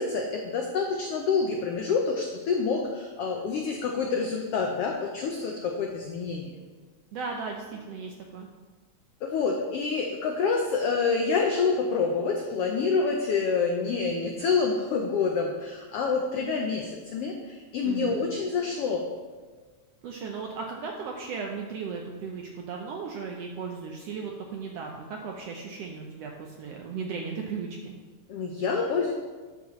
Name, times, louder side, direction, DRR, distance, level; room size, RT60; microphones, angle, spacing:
voice 1, 0.0-6.5 9.2-19.0 28.3-29.1, left 5 dB, 85° left, 2 dB, 1.3 m, -27 dB
voice 2, 7.1-8.5 17.8-18.2 20.0-27.9, right 5 dB, 80° right, 1 dB, 1.4 m, -36 dB
12.0 x 7.4 x 3.1 m, 1.4 s
omnidirectional pair, 3.6 m